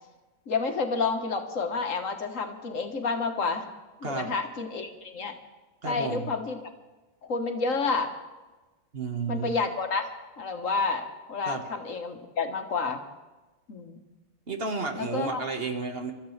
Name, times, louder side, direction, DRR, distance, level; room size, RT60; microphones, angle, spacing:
voice 1, 0.5-3.7 4.0-5.4 5.9-6.7 7.2-8.1 9.3-10.1 10.4-13.0 13.7-14.0 15.0-15.4, left 4 dB, 85° left, 4 dB, 1.8 m, -30 dB
voice 2, 4.0-4.3 5.8-6.3 8.9-9.5 11.5-11.6 14.5-16.1, right 4 dB, 50° right, 3 dB, 1.7 m, -32 dB
26.5 x 13.5 x 3.3 m, 1.2 s
omnidirectional pair, 1.3 m